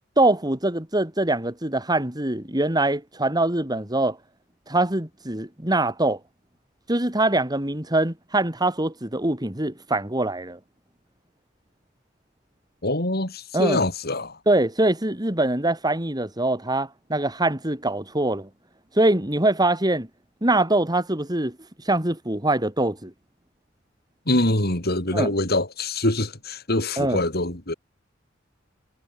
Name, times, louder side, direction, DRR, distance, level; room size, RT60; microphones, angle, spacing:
voice 1, 0.2-4.2 4.7-6.2 6.9-10.6 13.5-13.8 14.5-18.5 19.0-20.1 20.4-21.6 21.9-23.1 25.1-25.3 27.0-27.2, right 2 dB, 20° right, 3.7 m, -23 dB
voice 2, 12.8-14.4 24.3-27.7, left 2 dB, 55° left, 4.9 m, -24 dB
head